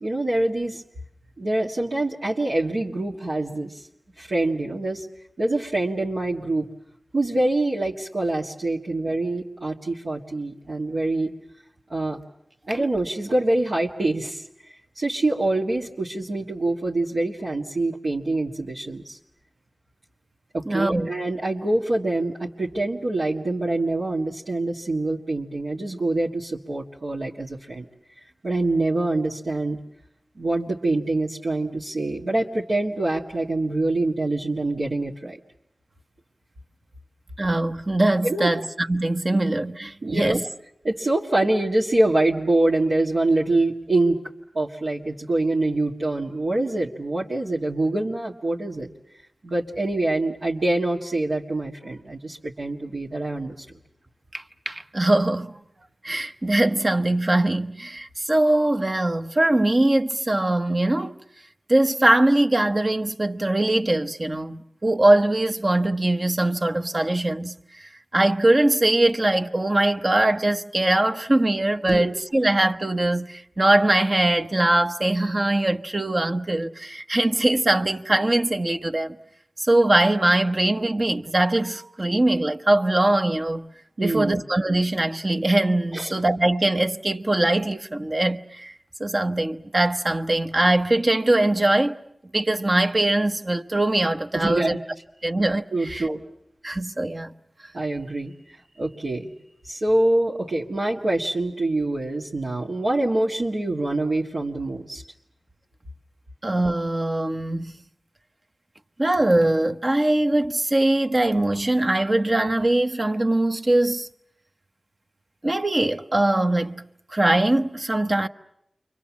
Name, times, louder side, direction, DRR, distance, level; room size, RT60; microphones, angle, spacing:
voice 1, 0.0-0.8 1.4-3.8 4.2-5.1 5.4-6.7 7.1-11.3 11.9-12.2 12.7-14.5 15.0-19.2 20.5-27.9 28.4-29.8 30.4-35.4 38.2-38.5 40.0-40.4 40.8-44.2 44.5-48.9 49.4-53.7 71.9-72.1 84.0-84.4 85.9-86.1 94.3-94.8 95.7-96.2 97.7-99.3 99.6-105.0, right 2 dB, 75° right, 1.8 m, -25 dB
voice 2, 20.7-21.1 37.4-40.5 54.3-55.5 56.0-61.2 61.7-67.5 68.1-79.1 79.6-83.7 84.0-88.7 89.0-92.0 92.3-94.7 95.2-96.1 96.6-97.3 106.4-107.7 109.0-114.1 115.4-116.8 117.1-118.3, right 1 dB, 45° right, 1.0 m, -22 dB
29.0 x 24.5 x 7.2 m
cardioid pair, 40°, 0 cm